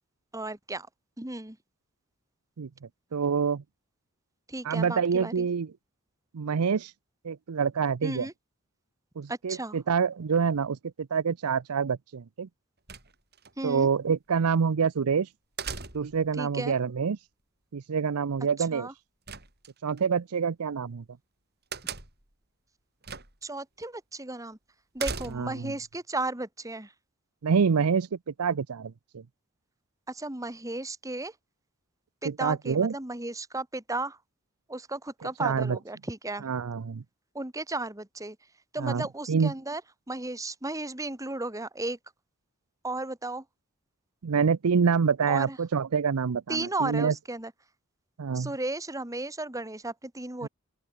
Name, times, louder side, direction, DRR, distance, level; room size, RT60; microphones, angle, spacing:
voice 1, 0.3-0.9 1.2-1.6 4.5-5.4 8.0-8.3 9.3-9.8 13.6-13.9 16.3-16.7 18.7-18.9 23.4-24.6 24.9-26.9 30.1-31.3 32.2-34.2 34.7-36.5 37.3-38.4 38.7-39.8 40.1-42.0 42.8-43.4 45.3-45.6 46.5-47.5 48.3-50.5, right 2 dB, 15° right, 1.6 m, -34 dB
voice 2, 3.1-3.6 4.6-5.7 6.3-6.9 7.2-8.3 9.2-12.5 13.6-15.3 15.9-17.2 17.7-18.9 19.8-21.0 25.3-25.7 27.4-29.2 32.2-32.9 35.4-35.8 36.4-37.0 38.8-39.5 44.2-47.1 48.2-48.5 50.4-50.5, right 6 dB, 85° right, 0.6 m, -26 dB
sound 1, 12.9-13.5 15.6-16.3 19.3-20.0 21.7-22.3 23.0-23.5 23.8-23.9 25.0-25.7, right 5 dB, 45° right, 7.0 m, -37 dB
open air
head